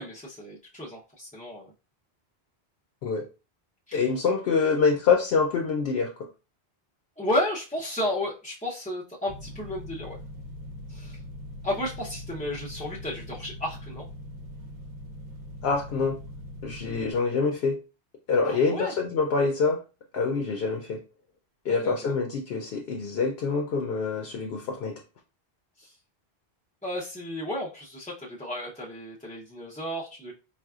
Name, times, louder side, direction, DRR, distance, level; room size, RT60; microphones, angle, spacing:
voice 1, 0.0-1.7 3.9-4.0 7.2-10.2 10.9-11.2 11.6-14.1 18.4-18.9 21.8-22.1 25.8-25.9 26.8-30.3, left 1 dB, 10° left, -5 dB, 0.3 m, -33 dB
voice 2, 3.9-6.1 15.6-16.2 16.6-17.8 18.3-19.8 20.1-21.0 21.7-24.9, left 4 dB, 70° left, 3 dB, 0.8 m, -25 dB
sound 1, 9.3-17.1, left 1 dB, 50° right, 0.7 m, -41 dB
4.2 x 2.3 x 2.3 m, 0.31 s
omnidirectional pair, 1.1 m